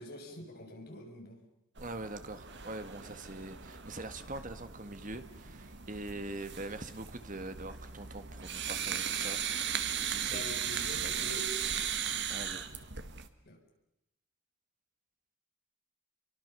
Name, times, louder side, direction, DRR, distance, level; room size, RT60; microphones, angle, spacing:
voice 1, 0.0-1.4 10.2-11.5 13.4-13.6, left 1 dB, 50° left, 6.6 m, -45 dB
voice 2, 1.8-10.4 12.3-12.6, right 2 dB, 40° right, 1.9 m, -43 dB
sound 1, 1.8-13.3, right 8 dB, 55° right, 1.8 m, -37 dB
30.0 x 24.0 x 7.0 m
head